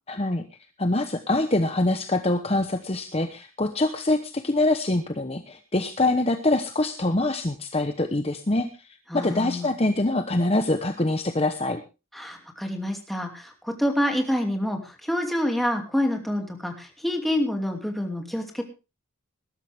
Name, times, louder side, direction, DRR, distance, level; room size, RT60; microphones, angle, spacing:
voice 1, 0.1-0.4 0.8-8.7 9.1-11.8, left 2 dB, 30° left, 8 dB, 1.0 m, -24 dB
voice 2, 9.1-9.7 12.1-18.6, left 1 dB, ahead, 3 dB, 2.6 m, -27 dB
20.0 x 12.5 x 3.5 m, 0.30 s
head